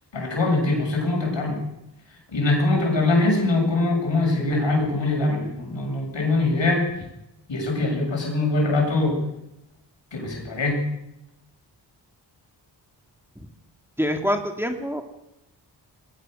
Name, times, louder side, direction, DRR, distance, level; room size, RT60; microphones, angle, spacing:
voice 1, 0.1-1.7 2.3-6.9 7.5-9.3 10.1-10.9, left 2 dB, 85° left, 1 dB, 7.6 m, -23 dB
voice 2, 14.0-15.0, equal, 5° right, 4 dB, 2.4 m, -25 dB
20.5 x 19.0 x 6.7 m, 0.87 s
wide cardioid pair, 70°, 43 cm